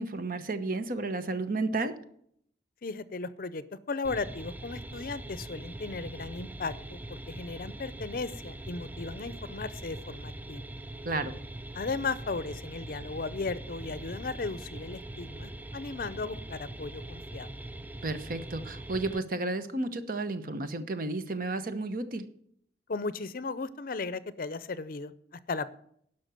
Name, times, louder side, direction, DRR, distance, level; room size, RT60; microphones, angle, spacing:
voice 1, 0.0-1.9 11.0-11.3 18.0-22.3, right 2 dB, 50° right, 10 dB, 0.9 m, -32 dB
voice 2, 2.8-10.7 11.7-17.5 22.9-25.7, left 4 dB, 55° left, 16 dB, 0.6 m, -36 dB
sound 1, 4.0-19.2, right 1 dB, 10° right, 0.4 m, -42 dB
11.5 x 5.8 x 7.6 m, 0.68 s
head